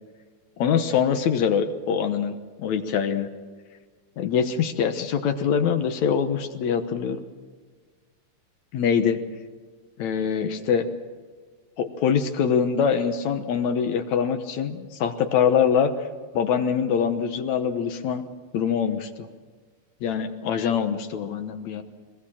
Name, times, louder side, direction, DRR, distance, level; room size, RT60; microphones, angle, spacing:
voice 1, 0.6-3.3 4.2-7.2 8.7-9.2 10.0-10.9 11.8-15.9 16.3-18.2 18.5-19.3 20.0-21.8, left 7 dB, 65° left, 8 dB, 2.3 m, -24 dB
22.5 x 21.5 x 7.3 m, 1.5 s
omnidirectional pair, 3.6 m